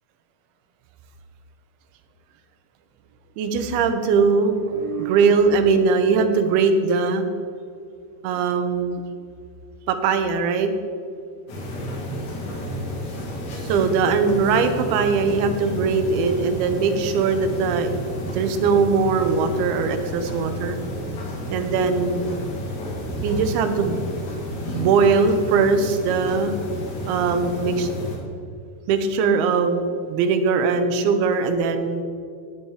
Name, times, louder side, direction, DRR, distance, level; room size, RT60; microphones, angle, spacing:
voice 1, 3.4-7.3 8.2-9.0 9.9-10.7 13.7-17.9 18.3-20.8 21.5-22.3 23.2-24.0 24.7-26.5 27.1-27.9 28.9-32.0, right 5 dB, 85° right, 7 dB, 2.8 m, -20 dB
sound 1, 11.5-28.2, equal, 55° left, 3.0 m, -31 dB
11.5 x 8.4 x 4.7 m, 2.3 s
omnidirectional pair, 4.4 m